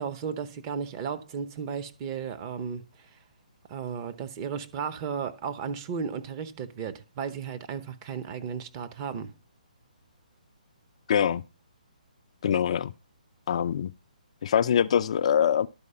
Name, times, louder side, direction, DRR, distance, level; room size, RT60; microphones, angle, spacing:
voice 1, 0.0-2.8 3.7-9.3, right 7 dB, 30° right, 1.0 m, -34 dB
voice 2, 11.1-11.4 12.4-12.9 13.5-13.9 14.4-15.7, left 8 dB, 50° left, 0.4 m, -23 dB
11.5 x 4.8 x 5.6 m
hypercardioid pair, 150°, 4 cm